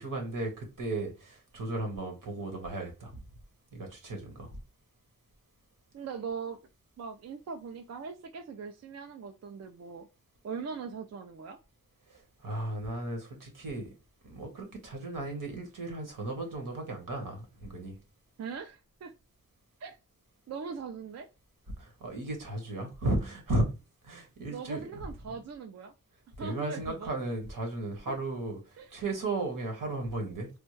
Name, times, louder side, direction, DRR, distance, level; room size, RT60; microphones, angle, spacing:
voice 1, 0.0-3.1 3.7-4.6 12.1-13.9 14.2-18.0 21.8-23.7 24.0-24.8 26.4-30.5, right 2 dB, 85° right, 1.3 m, -35 dB
voice 2, 5.9-6.6 7.0-10.1 10.4-11.6 18.4-19.1 19.8-20.0 20.5-21.3 24.5-25.9 26.4-27.1 28.1-28.2 28.8-29.0, right 5 dB, 55° right, 0.4 m, -40 dB
3.4 x 2.1 x 3.1 m
wide cardioid pair, 105°, 32 cm